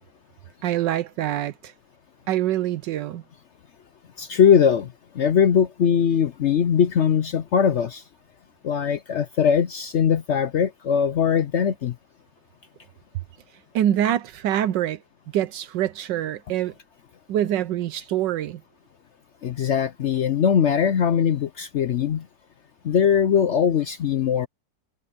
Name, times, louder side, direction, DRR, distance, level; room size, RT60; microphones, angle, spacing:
voice 1, 0.6-1.7 2.3-3.2 13.7-15.0 15.3-16.7 17.3-18.6, right 12 dB, 80° right, 1.3 m, -25 dB
voice 2, 4.2-8.0 8.6-11.9 19.4-22.3 22.8-24.5, left 7 dB, 75° left, 0.6 m, -21 dB
omnidirectional pair, 1.9 m